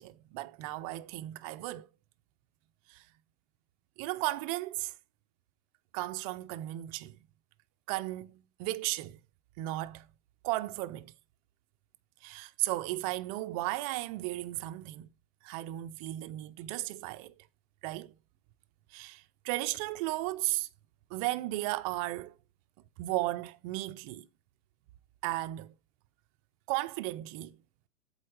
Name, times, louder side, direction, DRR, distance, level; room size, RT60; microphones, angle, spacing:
voice 1, 0.0-1.9 2.9-3.0 4.0-4.9 5.9-7.2 7.9-9.2 9.6-10.1 10.4-11.1 12.2-15.1 15.4-17.3 17.8-18.1 18.9-20.7 21.1-22.3 23.0-24.3 25.2-25.7 26.7-27.6, right 17 dB, 30° right, 0.4 m, -35 dB
7.7 x 4.5 x 4.7 m
hypercardioid pair, 130°, 40 cm